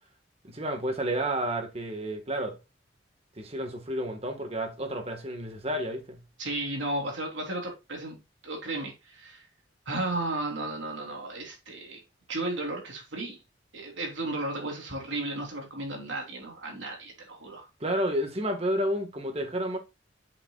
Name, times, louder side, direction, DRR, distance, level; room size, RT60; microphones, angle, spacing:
voice 1, 0.4-2.6 3.4-6.2 17.8-19.8, right 1 dB, 35° right, 1.5 m, -30 dB
voice 2, 6.4-8.2 8.4-9.4 9.8-12.0 12.3-13.4 13.7-17.7, right 2 dB, 75° right, 3.3 m, -34 dB
7.8 x 7.0 x 2.3 m
head